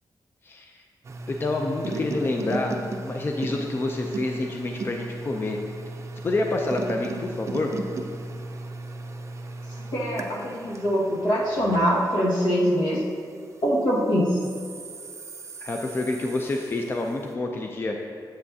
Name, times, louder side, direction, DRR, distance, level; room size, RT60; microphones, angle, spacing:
voice 1, 0.4-0.8 1.3-2.8 3.0-5.6 6.2-7.7 15.6-18.0, left 2 dB, 30° left, 2 dB, 0.4 m, -28 dB
sound 1, 1.0-13.7 14.3-17.1, right 2 dB, 40° right, 0.5 m, -36 dB
voice 2, 9.9-13.0 13.6-14.4, equal, 75° left, -4 dB, 1.7 m, -23 dB
8.6 x 7.5 x 2.7 m, 2.1 s
wide cardioid pair, 150°, 8 cm